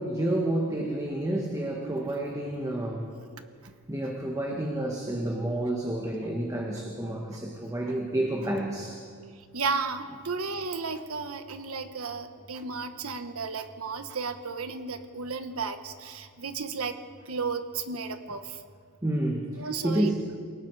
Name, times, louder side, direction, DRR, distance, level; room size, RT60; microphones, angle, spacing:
voice 1, 0.0-3.1 3.9-9.0 19.0-20.3, right 1 dB, 15° right, 0 dB, 1.8 m, -30 dB
voice 2, 9.5-16.9 17.3-18.4 19.6-20.1, right 4 dB, 70° right, 8 dB, 1.4 m, -33 dB
28.5 x 18.0 x 4.9 m, 2.1 s
head